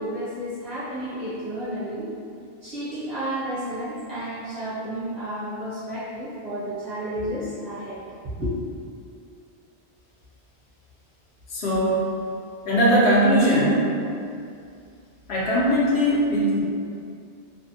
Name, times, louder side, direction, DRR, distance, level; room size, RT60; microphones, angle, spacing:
voice 1, 0.0-2.1 2.6-8.0 8.4-8.5, equal, 40° right, -11 dB, 0.8 m, -31 dB
voice 2, 11.5-12.1 12.7-13.9 15.3-16.6, equal, 70° left, -7 dB, 0.9 m, -20 dB
2.5 x 2.1 x 2.6 m, 2.4 s
omnidirectional pair, 1.2 m